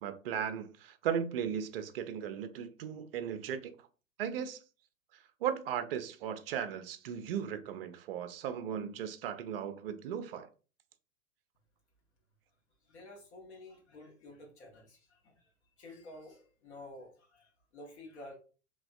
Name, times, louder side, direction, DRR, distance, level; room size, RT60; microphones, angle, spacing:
voice 1, 0.0-3.7 4.2-4.6 5.4-10.5, right 8 dB, 45° right, 0.4 m, -36 dB
voice 2, 12.8-18.4, left 1 dB, 55° left, 0.9 m, -51 dB
3.2 x 2.2 x 2.3 m
figure-of-eight pair, 100°, 41 cm